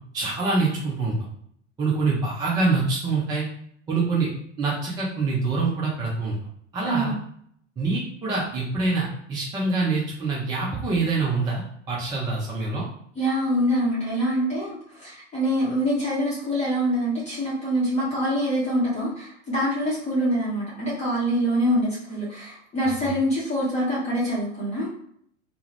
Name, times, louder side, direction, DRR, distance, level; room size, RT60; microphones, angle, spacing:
voice 1, 0.1-1.3 1.8-3.5 3.9-4.3 4.6-6.4 6.7-7.1 7.8-12.8 23.0-23.1, right 3 dB, 10° right, -5 dB, 0.3 m, -25 dB
voice 2, 6.8-7.2 13.2-24.9, equal, 20° left, -8 dB, 0.8 m, -25 dB
2.3 x 2.0 x 3.1 m, 0.67 s
figure-of-eight pair, 85°, 37 cm